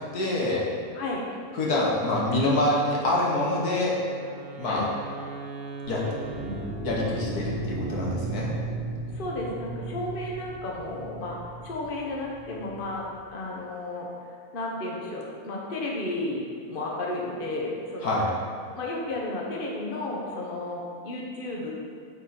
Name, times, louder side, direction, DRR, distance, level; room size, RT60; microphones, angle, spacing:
voice 1, 0.1-0.7 1.5-4.0 4.6-4.8 5.9-6.0 6.8-8.5 18.0-18.3, left 1 dB, 85° left, -4 dB, 2.0 m, -25 dB
Wind instrument woodwind instrument, 3.5-7.7, right 4 dB, 75° right, 1.2 m, -41 dB
sound 1, 6.0-13.1, right 2 dB, 15° right, 1.2 m, -36 dB
voice 2, 9.1-13.0 13.3-14.1 14.5-18.1 18.7-21.7, left 2 dB, 40° left, -2 dB, 1.3 m, -33 dB
9.5 x 5.3 x 4.3 m, 2.4 s
omnidirectional pair, 1.6 m